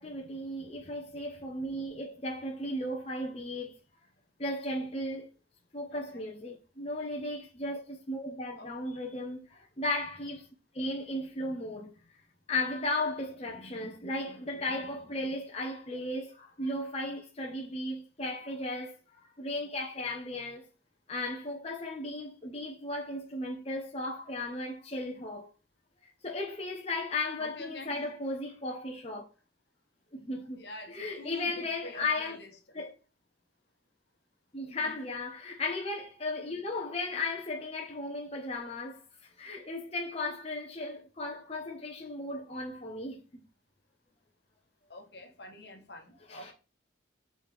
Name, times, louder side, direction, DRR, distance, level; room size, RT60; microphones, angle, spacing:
voice 1, 0.0-3.8 4.4-5.3 5.7-10.5 10.7-11.9 12.5-20.6 21.1-25.5 26.0-29.2 30.1-32.4 32.7-32.9 34.5-43.2 46.3-46.5, left 2 dB, 35° left, 1.1 m, -36 dB
voice 2, 5.9-6.2 8.5-8.7 27.4-28.1 30.6-32.5 34.8-35.1 44.9-46.5, left 2 dB, 60° left, 1.5 m, -47 dB
8.3 x 4.3 x 3.6 m
head